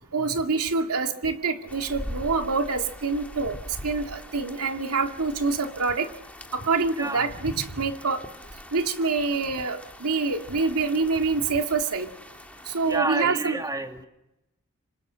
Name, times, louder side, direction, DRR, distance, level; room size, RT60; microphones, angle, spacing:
voice 1, 0.1-6.1 6.5-8.2 8.7-12.1 12.7-13.6, right 4 dB, 85° right, 5 dB, 2.3 m, -26 dB
sound 1, 1.7-13.0, left 1 dB, 5° left, 1.9 m, -43 dB
voice 2, 6.9-7.3 12.9-14.1, right 2 dB, 15° right, 4 dB, 2.6 m, -29 dB
26.5 x 26.5 x 6.4 m, 0.89 s
head